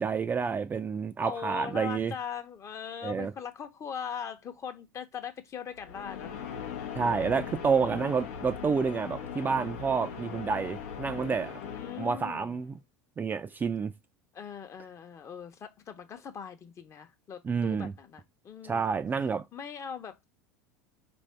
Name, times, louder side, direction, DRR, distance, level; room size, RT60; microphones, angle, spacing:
voice 1, 0.0-2.1 3.0-3.3 6.9-11.6 12.0-12.8 13.2-13.9 17.4-17.9 18.6-19.4, right 5 dB, 20° right, 0.3 m, -29 dB
voice 2, 1.2-6.3 7.1-7.5 8.2-8.3 11.6-12.6 14.3-18.9 19.5-20.2, left 7 dB, 35° left, 0.8 m, -41 dB
sound 1, 5.7-12.6, left 8 dB, 80° left, 0.8 m, -40 dB
4.3 x 2.6 x 3.2 m
hypercardioid pair, 90°, 8 cm